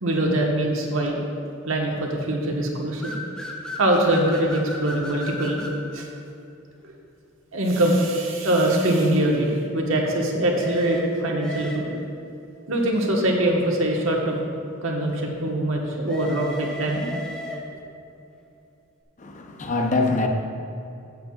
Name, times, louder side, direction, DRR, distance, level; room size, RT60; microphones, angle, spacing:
voice 1, 0.0-1.2 1.6-3.1 3.8-5.6 5.9-6.1 6.8-6.9 7.5-11.9 12.7-14.4 14.8-17.1, right 1 dB, 80° right, 0 dB, 1.3 m, -23 dB
sound 1, 3.0-5.8 10.6-12.2 16.0-17.9, equal, 5° left, 0.9 m, -35 dB
voice 2, 19.2-20.3, left 3 dB, 35° left, 3 dB, 0.7 m, -24 dB
15.0 x 7.7 x 2.4 m, 2.7 s
head